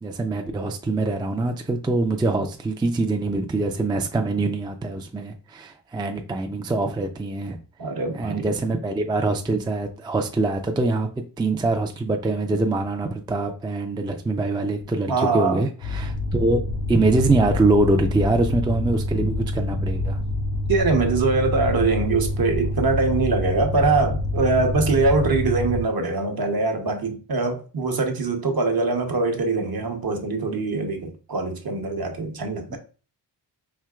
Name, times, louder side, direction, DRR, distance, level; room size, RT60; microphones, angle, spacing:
voice 1, 0.0-7.6 8.1-16.6 16.9-20.2 32.7-32.8, right 2 dB, 10° right, 0.4 m, -24 dB
voice 2, 7.8-8.5 15.1-15.6 20.7-32.8, right 3 dB, 55° right, 0.9 m, -23 dB
sound 1, 15.8-25.8, left 1 dB, 65° left, 0.7 m, -26 dB
4.5 x 2.8 x 2.3 m
cardioid pair, 75°, 44 cm